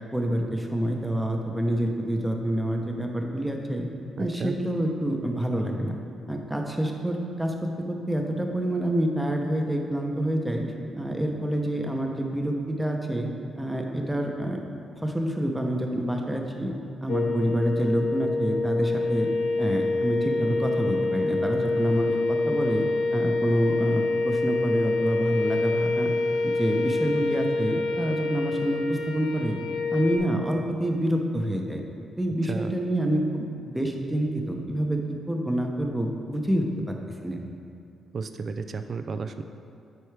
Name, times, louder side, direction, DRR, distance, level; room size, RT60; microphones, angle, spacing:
voice 1, 0.1-3.9 4.2-6.0 6.3-10.6 10.9-13.3 13.6-14.6 15.0-16.7 17.0-19.3 19.6-22.8 23.1-26.1 26.4-29.6 29.9-31.8 32.2-35.0 35.3-37.0 37.2-37.4, right 1 dB, 10° right, 2 dB, 0.8 m, -27 dB
voice 2, 4.2-4.5 32.5-32.7 38.1-39.4, right 5 dB, 55° right, 8 dB, 0.4 m, -32 dB
sound 1, 17.1-30.2, left 3 dB, 80° left, 0.5 m, -26 dB
7.8 x 4.5 x 3.4 m, 2.5 s
supercardioid pair, 65°, 0 cm